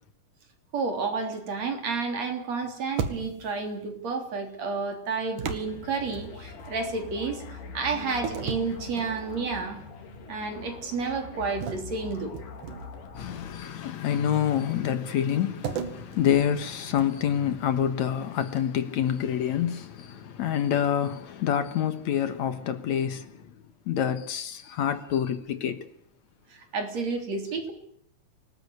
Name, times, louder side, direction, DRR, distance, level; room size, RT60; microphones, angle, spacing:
voice 1, 0.7-9.8 10.3-12.3 26.5-27.7, right 4 dB, 55° right, 4.6 m, -31 dB
sound 1, 3.0-3.6 5.4-6.7 8.2-9.6 10.0-10.3 11.6-13.1 15.6-17.3, right 7 dB, 80° right, 3.5 m, -36 dB
sound 2, 5.6-13.8, left 4 dB, 85° left, 4.2 m, -43 dB
Bass guitar, 7.9-11.6, left 6 dB, 50° left, 5.1 m, -48 dB
voice 2, 13.2-23.5 23.9-25.9, left 9 dB, 65° left, 2.5 m, -27 dB
28.5 x 19.5 x 8.2 m
omnidirectional pair, 3.6 m